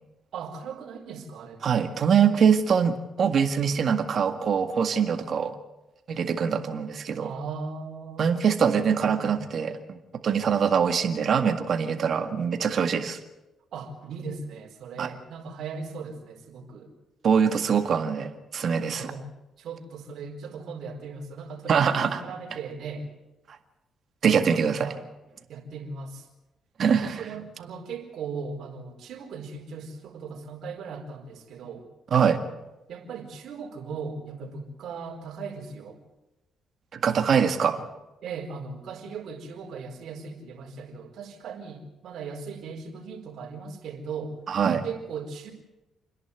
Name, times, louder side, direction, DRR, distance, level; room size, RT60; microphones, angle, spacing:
voice 1, 0.3-1.9 7.2-9.4 13.7-16.9 18.9-19.3 19.6-23.1 24.2-25.0 25.5-26.3 26.9-31.9 32.9-36.0 38.2-44.4 44.8-45.5, right 5 dB, 70° right, 1 dB, 4.4 m, -38 dB
voice 2, 1.6-5.5 6.1-7.3 8.2-13.2 15.0-15.1 17.2-19.1 21.7-22.2 24.2-24.9 26.8-27.2 32.1-32.4 37.0-37.9 44.5-44.9, right 7 dB, 55° right, 7 dB, 1.9 m, -23 dB
29.0 x 11.0 x 8.3 m, 1.1 s
cardioid pair, 90°, 0 cm